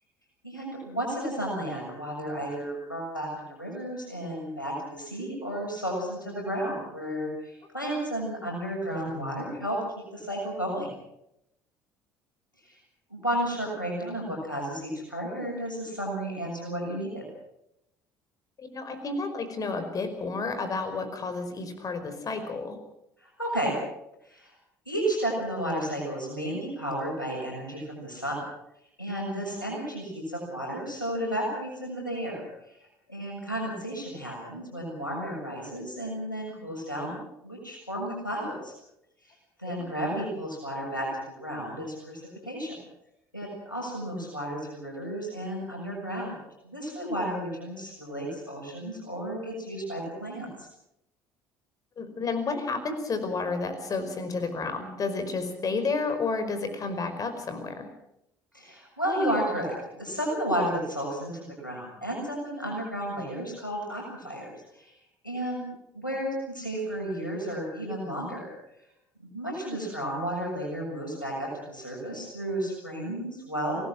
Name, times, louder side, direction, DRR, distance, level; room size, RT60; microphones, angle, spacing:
voice 1, 0.4-9.8 10.1-10.9 12.6-12.8 13.1-17.3 23.2-23.8 24.2-24.5 24.9-28.4 29.0-32.4 33.1-38.7 39.6-42.8 43.3-46.4 46.6-50.7 58.5-64.5 64.7-64.9 65.2-65.7 65.9-68.5 69.2-73.8, right 1 dB, 90° left, -2 dB, 7.0 m, -32 dB
voice 2, 18.6-22.8 39.7-39.8 52.0-57.9, left 4 dB, 35° left, 9 dB, 5.1 m, -31 dB
25.5 x 19.0 x 6.2 m, 0.80 s
figure-of-eight pair, 55°, 10 cm